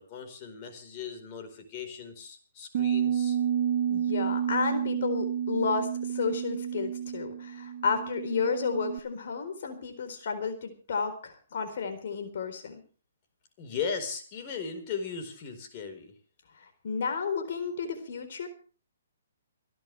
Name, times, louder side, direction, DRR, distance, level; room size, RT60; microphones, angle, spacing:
voice 1, 0.0-3.4 13.6-16.1, left 6 dB, 35° left, 5 dB, 4.6 m, -37 dB
Bass guitar, 2.7-9.0, right 9 dB, 50° right, 1.3 m, -30 dB
voice 2, 3.9-12.8 16.5-18.5, left 5 dB, 60° left, 7 dB, 4.2 m, -32 dB
29.5 x 10.5 x 3.4 m, 0.39 s
hypercardioid pair, 145°, 0 cm